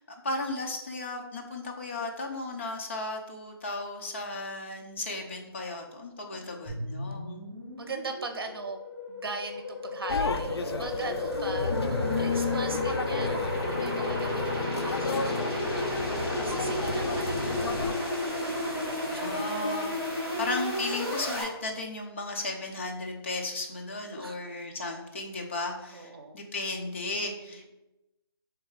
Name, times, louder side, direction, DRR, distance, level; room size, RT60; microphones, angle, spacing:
voice 1, 0.0-7.4 19.1-27.7, left 2 dB, 30° left, 1 dB, 0.6 m, -35 dB
voice 2, 6.3-6.8 7.8-8.8 9.1-17.6 18.5-19.5 20.2-20.3 24.2-24.4 25.9-26.4 27.5-27.7, right 3 dB, 65° right, 5 dB, 0.8 m, -40 dB
sound 1, 6.7-21.4, left 1 dB, 15° left, 1.5 m, -32 dB
sound 2, 10.1-17.9, left 4 dB, 80° left, 0.5 m, -32 dB
3.5 x 3.2 x 4.7 m, 0.96 s
hypercardioid pair, 170°, 13 cm